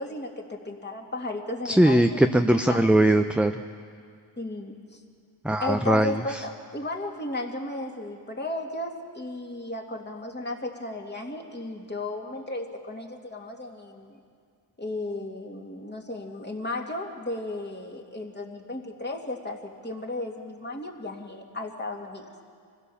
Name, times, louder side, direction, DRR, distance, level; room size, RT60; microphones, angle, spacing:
voice 1, 0.0-2.2 2.7-2.9 4.4-5.0 5.6-14.2 14.8-22.3, left 2 dB, 20° left, 1 dB, 2.7 m, -34 dB
voice 2, 1.7-3.5 5.4-6.4, right 1 dB, 5° right, 6 dB, 0.6 m, -20 dB
25.0 x 16.0 x 7.1 m, 2.2 s
cardioid pair, 75°, 46 cm